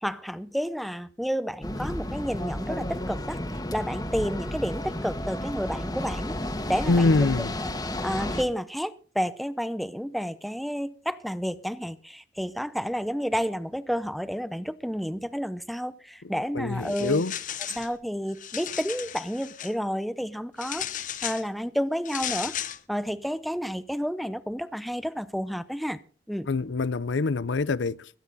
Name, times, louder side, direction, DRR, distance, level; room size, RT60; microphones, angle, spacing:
voice 1, 0.0-3.4 3.7-6.4 6.7-7.1 7.6-7.7 8.0-17.2 17.7-20.9 21.2-22.5 22.9-26.0 26.3-26.5, equal, ahead, 0.6 m, -30 dB
sound 1, 1.6-8.4, left 1 dB, 20° left, 1.5 m, -32 dB
voice 2, 6.9-7.5 16.5-17.4 26.5-28.1, left 3 dB, 85° left, 0.6 m, -24 dB
sound 2, 16.8-17.9 18.3-19.7 20.6-21.5 22.1-22.8, left 10 dB, 45° left, 0.8 m, -35 dB
21.5 x 9.6 x 4.0 m
head